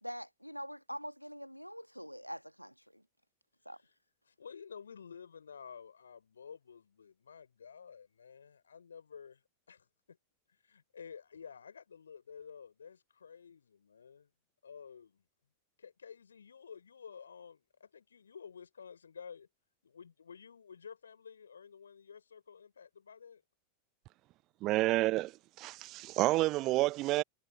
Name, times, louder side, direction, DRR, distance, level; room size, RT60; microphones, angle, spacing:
voice 1, 0.0-3.0 3.7-3.8, equal, 90° right, 1.9 m, -44 dB
voice 2, 4.3-9.4 9.7-10.2 10.5-14.3 14.6-15.2 15.8-19.5 19.8-23.4, left 6 dB, 70° left, 6.3 m, -52 dB
voice 3, 24.6-25.3 25.6-27.2, right 18 dB, 40° right, 1.1 m, -29 dB
figure-of-eight pair, 90°, 0 cm